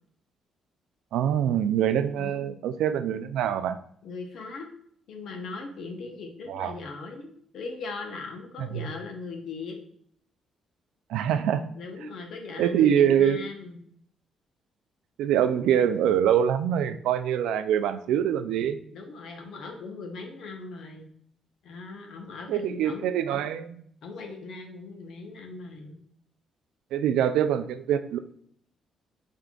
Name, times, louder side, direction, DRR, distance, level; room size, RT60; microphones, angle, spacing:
voice 1, 1.1-3.8 6.5-6.8 8.6-8.8 11.1-11.6 12.6-13.4 15.2-18.8 22.5-23.8 26.9-28.2, right 9 dB, 90° right, 10 dB, 0.3 m, -24 dB
voice 2, 2.2-2.5 4.0-4.7 5.1-9.8 11.7-13.8 18.9-21.1 21.6-23.4 24.0-26.0, left 3 dB, 70° left, 3 dB, 0.9 m, -39 dB
4.4 x 3.7 x 2.4 m, 0.62 s
cardioid pair, 90°, 0 cm